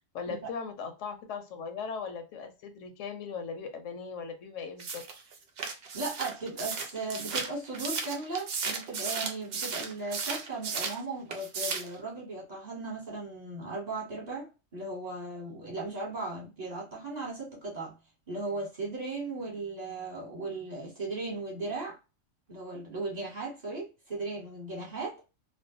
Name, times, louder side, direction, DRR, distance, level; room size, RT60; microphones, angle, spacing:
voice 1, 0.1-5.0, left 5 dB, 75° left, 6 dB, 0.9 m, -38 dB
sound 1, 4.8-11.0 11.3-12.0, right 5 dB, 60° right, 0.7 m, -35 dB
voice 2, 5.9-18.0 18.3-22.0 22.5-25.2, right 3 dB, 35° right, -3 dB, 1.0 m, -37 dB
2.5 x 2.1 x 2.5 m, 0.29 s
omnidirectional pair, 1.3 m